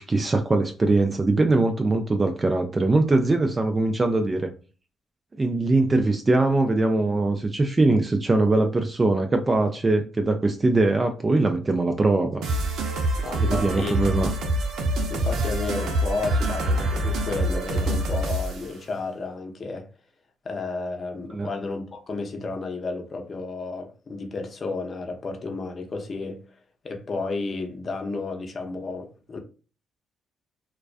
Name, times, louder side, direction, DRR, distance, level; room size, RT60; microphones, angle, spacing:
voice 1, 0.0-4.5 5.4-12.4 13.4-14.3 21.3-21.5, right 2 dB, 25° right, 0.3 m, -22 dB
sound 1, 12.4-18.7, right 1 dB, 80° right, 0.6 m, -25 dB
voice 2, 13.2-14.2 15.1-19.9 20.4-26.4 26.8-29.4, left 3 dB, 40° left, 0.6 m, -32 dB
2.3 x 2.2 x 2.4 m
cardioid pair, 90°, 0 cm